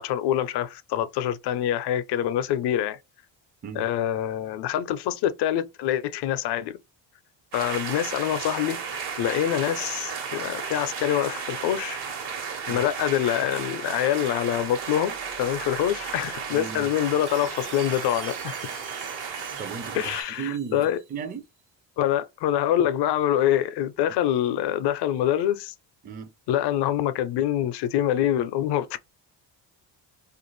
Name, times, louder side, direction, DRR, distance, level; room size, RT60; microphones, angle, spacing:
voice 1, 0.0-3.0 3.7-6.8 7.5-8.8 9.2-12.0 12.7-18.5 19.9-21.0 22.0-25.7 26.5-29.0, left 11 dB, 65° left, 0.6 m, -25 dB
sound 1, 7.5-20.2, right 6 dB, 65° right, 1.2 m, -34 dB
sound 2, 7.6-20.1, right 8 dB, 85° right, 0.8 m, -48 dB
voice 2, 16.5-16.9 19.6-20.1 20.4-20.8 21.1-21.4 26.0-26.3, right 7 dB, 20° right, 0.4 m, -35 dB
Chime, 17.2-21.3, right 7 dB, 45° right, 0.8 m, -46 dB
2.5 x 2.4 x 3.1 m
cardioid pair, 100°, 44 cm